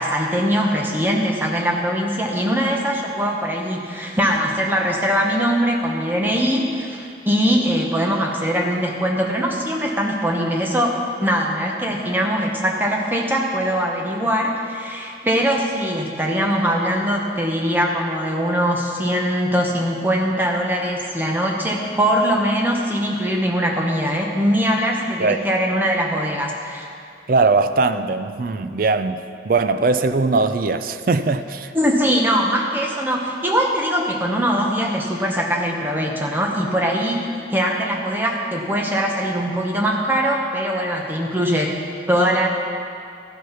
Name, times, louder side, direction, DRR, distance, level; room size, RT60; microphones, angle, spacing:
voice 1, 0.0-26.9 31.7-41.8 42.1-42.5, equal, 10° right, 0 dB, 1.0 m, -21 dB
voice 2, 27.3-29.2 29.4-31.7, right 3 dB, 50° right, 10 dB, 0.4 m, -20 dB
14.0 x 6.3 x 5.7 m, 2.4 s
head